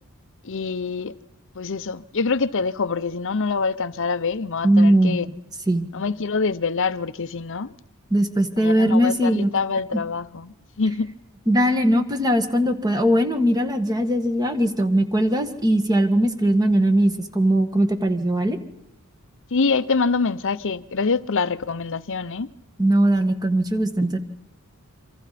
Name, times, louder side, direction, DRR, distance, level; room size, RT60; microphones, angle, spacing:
voice 1, 0.4-1.1 1.5-5.3 5.9-7.7 8.6-11.1 19.5-22.5, left 4 dB, 60° left, 0.8 m, -25 dB
voice 2, 4.6-5.2 5.7-5.9 8.1-9.5 11.5-18.6 22.8-24.2, right 1 dB, 15° right, 1.6 m, -20 dB
27.5 x 25.0 x 4.2 m
head